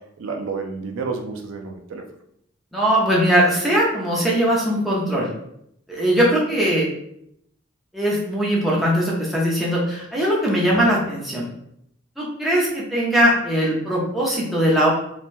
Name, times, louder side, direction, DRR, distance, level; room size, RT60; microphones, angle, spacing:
voice 1, 0.2-2.0 10.7-10.9, right 4 dB, 80° right, 4 dB, 0.4 m, -30 dB
voice 2, 2.7-5.3 5.9-6.9 7.9-11.5 12.2-14.9, equal, ahead, -6 dB, 0.6 m, -20 dB
3.1 x 2.2 x 2.5 m, 0.75 s
head